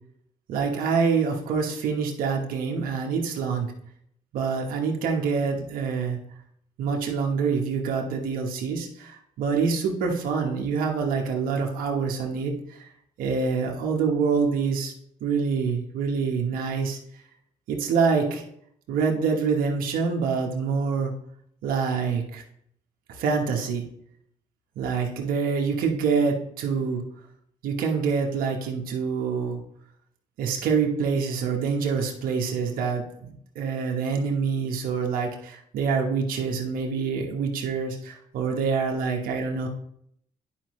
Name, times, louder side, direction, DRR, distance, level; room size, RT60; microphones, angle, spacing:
voice 1, 0.5-3.7 4.3-6.2 6.8-12.9 13.2-14.9 15.2-17.0 17.7-18.4 18.9-21.1 21.6-22.4 23.1-23.9 24.8-27.0 27.6-29.6 30.4-39.7, right 5 dB, 90° right, 1 dB, 1.2 m, -26 dB
10.0 x 5.1 x 3.2 m, 0.70 s
supercardioid pair, 65°, 14 cm